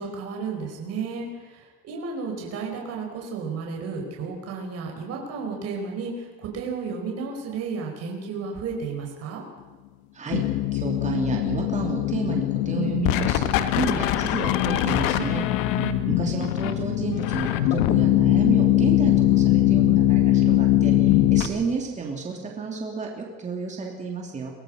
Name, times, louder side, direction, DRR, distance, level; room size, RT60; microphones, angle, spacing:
voice 1, 0.0-9.4 15.7-16.5, right 5 dB, 40° right, 1 dB, 5.0 m, -33 dB
sound 1, 10.3-21.5, left 14 dB, 70° left, 1.5 m, -21 dB
voice 2, 10.7-13.5 13.8-15.4 16.2-24.5, right 5 dB, 20° right, 1 dB, 3.0 m, -31 dB
23.5 x 17.5 x 6.4 m, 1.3 s
cardioid pair, 140°, 36 cm